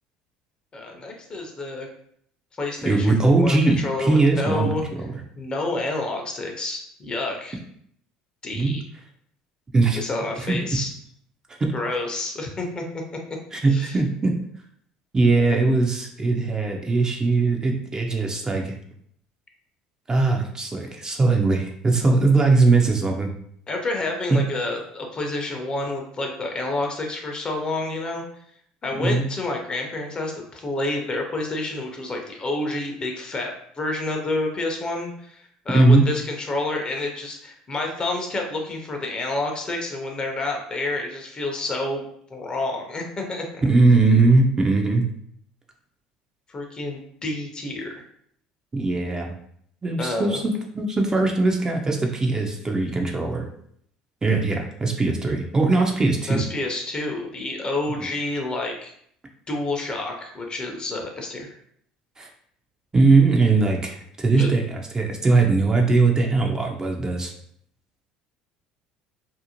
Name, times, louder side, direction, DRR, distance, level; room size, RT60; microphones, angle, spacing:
voice 1, 0.7-1.9 2.6-4.9 5.4-7.6 8.4-8.8 9.9-10.9 11.7-12.8 13.1-13.4 13.6-14.0 23.7-28.2 28.8-42.0 42.3-43.6 46.5-48.1 50.0-50.4 56.3-58.9 59.5-61.6 64.4-64.5, left 2 dB, 30° left, 2 dB, 0.6 m, -29 dB
voice 2, 2.8-4.7 4.9-5.1 8.5-8.7 9.7-10.0 10.4-10.8 11.6-11.7 13.5-14.3 15.1-18.8 20.1-23.3 24.3-24.4 28.9-29.3 35.7-36.1 43.6-45.0 48.7-49.3 49.8-53.5 54.2-56.4 62.2-62.3 62.9-64.6 64.9-67.3, right 3 dB, 25° right, 1 dB, 0.5 m, -20 dB
2.6 x 2.0 x 2.8 m, 0.67 s
hypercardioid pair, 75°, 3 cm